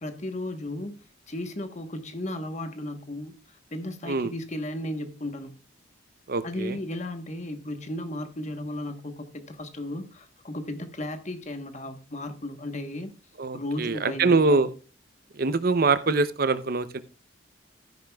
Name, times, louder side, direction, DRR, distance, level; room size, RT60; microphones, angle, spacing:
voice 1, 0.0-1.0 1.3-3.3 3.7-5.5 6.4-13.1 13.5-14.6, left 1 dB, 35° left, 1.2 m, -35 dB
voice 2, 6.3-6.8 13.4-14.7 15.4-17.0, right 3 dB, 50° right, 0.7 m, -24 dB
13.5 x 10.5 x 2.3 m
head